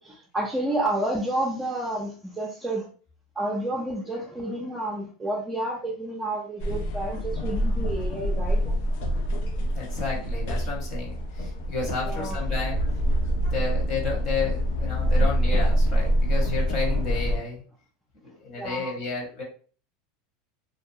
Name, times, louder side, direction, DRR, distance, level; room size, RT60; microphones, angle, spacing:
voice 1, 0.0-2.9 3.4-8.7 12.0-12.4 18.6-19.0, right 1 dB, 10° right, -3 dB, 0.5 m, -30 dB
sound 1, 6.6-17.4, equal, 75° left, 0.6 m, -25 dB
voice 2, 9.7-12.8 13.3-17.6 18.2-19.4, left 4 dB, 50° left, -2 dB, 1.2 m, -32 dB
2.6 x 2.2 x 2.7 m, 0.42 s
supercardioid pair, 120°, 0 cm